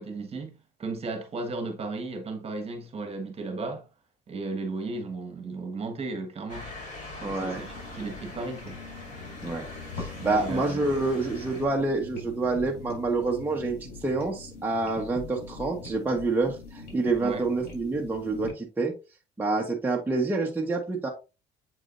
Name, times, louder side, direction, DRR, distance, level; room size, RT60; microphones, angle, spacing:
voice 1, 0.0-3.9 4.3-6.8 7.2-8.8 10.2-10.8 17.2-17.5, right 3 dB, 35° right, 1.5 m, -35 dB
Motor vehicle (road) / Siren, 6.5-11.7, left 2 dB, 45° left, 3.7 m, -42 dB
voice 2, 7.2-7.6 9.4-9.6 10.0-18.9 19.4-21.1, right 3 dB, 10° right, 1.2 m, -27 dB
sound 1, 7.5-18.5, left 3 dB, 80° left, 3.8 m, -43 dB
7.8 x 4.8 x 2.6 m
cardioid pair, 110°, 17 cm